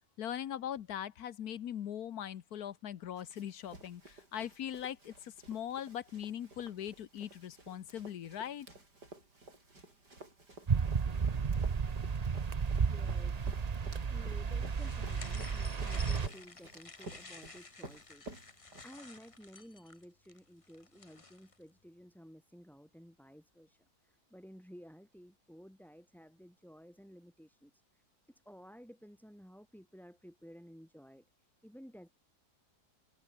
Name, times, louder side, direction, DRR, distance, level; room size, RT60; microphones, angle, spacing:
voice 1, 0.2-8.7, left 10 dB, 70° left, 1.4 m, -41 dB
Run, 3.2-19.3, right 2 dB, 80° right, 7.6 m, -53 dB
sound 1, 10.7-16.3, right 5 dB, 35° right, 0.6 m, -33 dB
voice 2, 12.8-32.1, equal, ahead, 4.7 m, -55 dB
sound 2, 14.7-21.6, left 3 dB, 20° left, 1.3 m, -52 dB
omnidirectional pair, 1.7 m